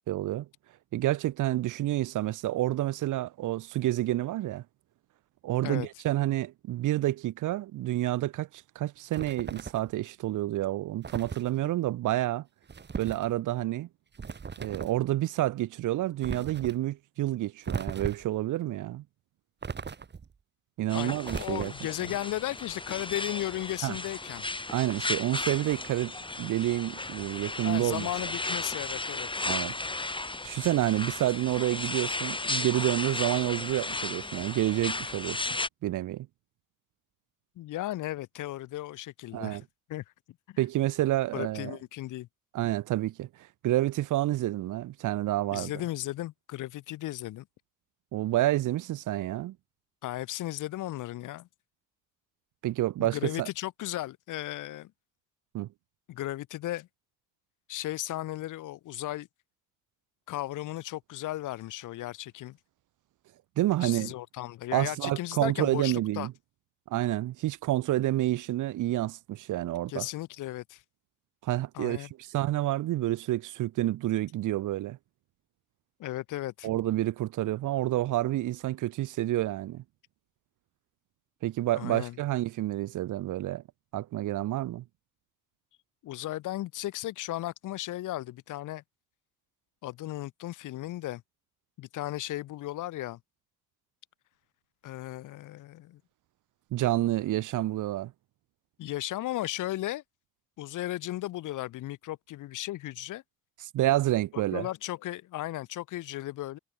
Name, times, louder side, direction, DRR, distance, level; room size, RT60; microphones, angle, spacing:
voice 1, 0.1-0.5 0.9-4.6 5.4-12.4 13.0-13.9 14.6-19.0 20.8-21.7 23.8-24.0 24.7-28.1 29.5-29.7 30.4-35.5 35.8-36.3 39.3-39.6 40.6-41.8 42.5-43.3 43.6-45.7 48.1-49.5 52.6-53.5 55.5-55.7 63.6-64.1 64.7-66.3 66.9-70.1 71.4-75.0 76.6-79.8 81.4-83.6 83.9-84.8 96.7-98.1 103.7-104.7, right 15 dB, 85° right, 2.3 m, -29 dB
sound 1, 9.1-9.9 11.0-11.5 12.7-13.3 14.1-15.0 16.2-16.8 17.6-18.4 19.6-20.3 21.2-21.9, right 6 dB, 35° right, 2.5 m, -37 dB
voice 2, 20.9-24.4 27.6-29.3 37.6-39.6 39.9-40.0 40.5-40.6 41.3-42.3 45.5-47.4 50.0-51.5 53.0-54.9 56.1-56.9 57.7-59.3 60.3-62.6 63.8-66.3 69.9-70.8 71.7-72.1 76.0-76.7 81.7-82.1 86.0-88.8 89.8-91.2 91.8-93.2 94.8-96.0 98.8-100.0 100.6-103.2 104.5-106.6, left 15 dB, 85° left, 2.5 m, -35 dB
sound 2, 20.9-35.7, left 2 dB, 15° left, 4.2 m, -35 dB
cardioid pair, 90°, 30 cm